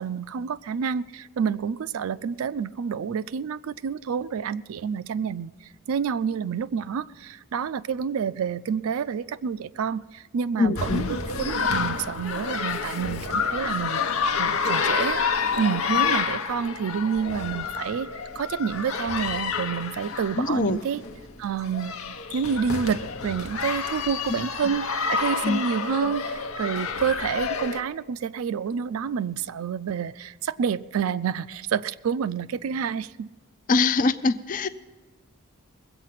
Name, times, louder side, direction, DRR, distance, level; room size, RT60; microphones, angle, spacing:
voice 1, 0.0-5.5 5.9-15.2 15.6-18.1 18.4-21.0 21.4-33.3, right 7 dB, 75° right, 0.4 m, -28 dB
voice 2, 10.6-11.1 20.4-20.8 24.3-24.4 25.4-25.6 33.7-34.7, left 3 dB, 40° left, 0.4 m, -23 dB
sound 1, 10.8-27.8, left 5 dB, 75° left, 0.9 m, -29 dB
21.0 x 8.2 x 5.8 m
head